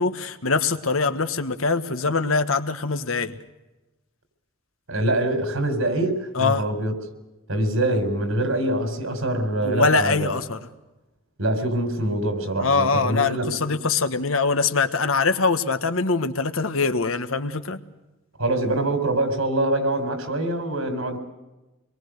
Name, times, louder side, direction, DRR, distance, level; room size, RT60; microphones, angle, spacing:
voice 1, 0.0-3.3 6.3-6.7 9.6-10.6 12.6-17.8, left 4 dB, 80° left, 9 dB, 1.4 m, -23 dB
voice 2, 4.9-6.9 7.5-10.3 11.4-13.5 18.4-21.2, right 1 dB, 80° right, 7 dB, 4.6 m, -24 dB
25.5 x 22.0 x 6.6 m, 1.0 s
head